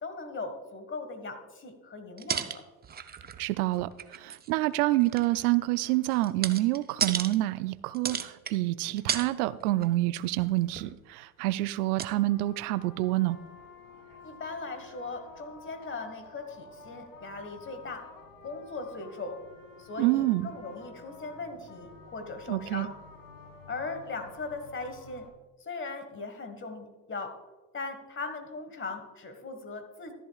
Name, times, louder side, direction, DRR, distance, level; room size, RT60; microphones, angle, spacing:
voice 1, 0.0-2.6 14.2-18.1 18.4-19.4 19.8-22.9 23.7-25.3 25.6-27.3 27.7-30.1, left 3 dB, 25° left, 8 dB, 1.6 m, -39 dB
sound 1, 2.2-3.5 3.7-4.5 4.9-7.4 7.9-8.6 8.9-9.3 9.6-9.9 10.2-11.0 11.7-11.8 12.0-12.1, right 7 dB, 20° right, 0.5 m, -34 dB
voice 2, 3.4-13.4 20.0-20.5 22.5-22.9, right 17 dB, 85° right, 15 dB, 0.5 m, -27 dB
sound 2, 12.1-25.3, left 4 dB, 80° left, 2.0 m, -51 dB
13.0 x 11.0 x 2.4 m, 1.2 s
supercardioid pair, 90°, 44 cm